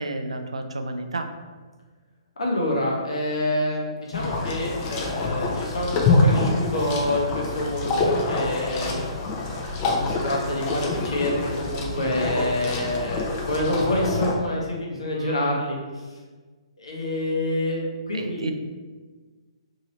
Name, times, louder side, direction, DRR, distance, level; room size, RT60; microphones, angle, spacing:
voice 1, 0.0-1.3 15.1-15.6 18.1-18.5, right 2 dB, 75° right, 6 dB, 0.3 m, -30 dB
voice 2, 2.4-8.9 9.2-9.4 9.8-15.8 16.8-18.5, left 1 dB, 70° left, -2 dB, 0.9 m, -27 dB
sound 1, 4.1-14.3, left 3 dB, 30° left, 0.5 m, -26 dB
2.8 x 2.8 x 3.0 m, 1.4 s
figure-of-eight pair, 130°, 3 cm